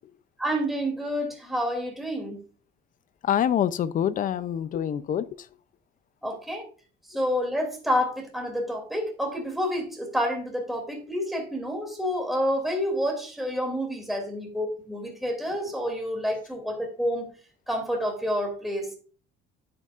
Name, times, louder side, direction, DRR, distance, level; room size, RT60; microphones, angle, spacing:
voice 1, 0.4-2.4 6.2-6.6 7.1-17.3 17.7-19.0, equal, ahead, 2.8 m, -29 dB
voice 2, 3.2-5.3, left 9 dB, 40° left, 0.6 m, -25 dB
9.7 x 8.4 x 2.5 m
cardioid pair, 145°, 20 cm